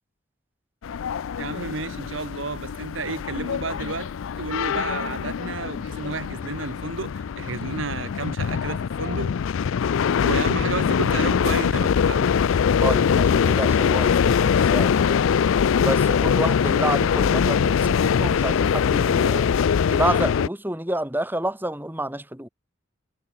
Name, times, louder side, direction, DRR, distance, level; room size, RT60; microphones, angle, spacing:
sound 1, 0.8-20.5, left 7 dB, 80° left, 0.4 m, -22 dB
voice 1, 1.4-4.1 4.4-9.3 10.2-12.3, right 3 dB, 75° right, 1.7 m, -31 dB
voice 2, 12.8-15.2 15.8-19.5 19.9-22.5, right 1 dB, 10° right, 3.3 m, -29 dB
head